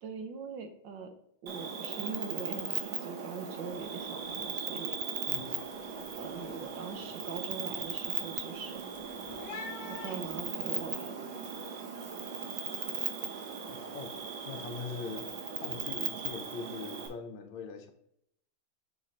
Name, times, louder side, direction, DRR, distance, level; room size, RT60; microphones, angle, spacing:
voice 1, 0.0-1.1 1.4-4.9 5.9-8.8 9.9-11.3, right 6 dB, 70° right, 7 dB, 1.4 m, -42 dB
Cricket, 1.5-17.1, right 7 dB, 85° right, 1.8 m, -38 dB
sound 1, 3.6-3.9 4.2-4.6 5.0-10.9, left 4 dB, 60° left, 1.2 m, -49 dB
voice 2, 5.2-5.6 13.7-14.1 14.4-15.3 15.6-17.9, left 5 dB, 75° left, 6 dB, 1.5 m, -42 dB
6.3 x 3.8 x 4.2 m, 0.74 s
omnidirectional pair, 2.2 m